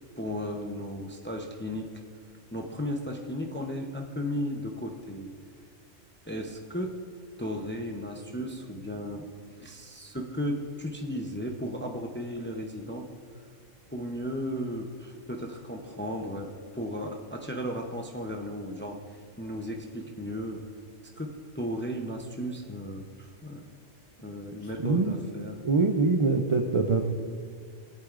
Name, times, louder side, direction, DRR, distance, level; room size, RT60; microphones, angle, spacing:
voice 1, 0.2-1.9 2.5-5.3 6.3-7.0 7.4-9.3 9.6-13.1 13.9-20.6 21.2-23.7 24.2-25.6, equal, 15° left, 2 dB, 0.4 m, -35 dB
voice 2, 24.8-25.1 25.6-27.0, right 3 dB, 50° right, 4 dB, 0.3 m, -24 dB
17.5 x 8.3 x 2.5 m, 2.1 s
omnidirectional pair, 1.3 m